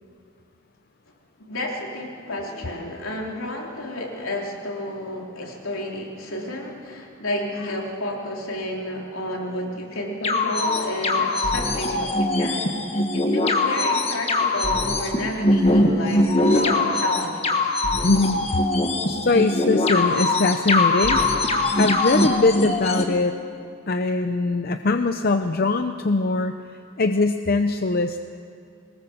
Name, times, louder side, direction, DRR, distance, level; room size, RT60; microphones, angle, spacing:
voice 1, 1.4-12.7 13.1-16.3 16.5-17.7, left 1 dB, 75° left, 0 dB, 3.4 m, -31 dB
sound 1, 10.2-23.0, left 2 dB, 30° left, 1.6 m, -22 dB
voice 2, 18.0-18.4 19.1-21.2 21.8-23.3 23.9-26.5 27.0-28.2, left 3 dB, 45° left, 7 dB, 0.6 m, -21 dB
22.5 x 19.5 x 7.1 m, 2.4 s
head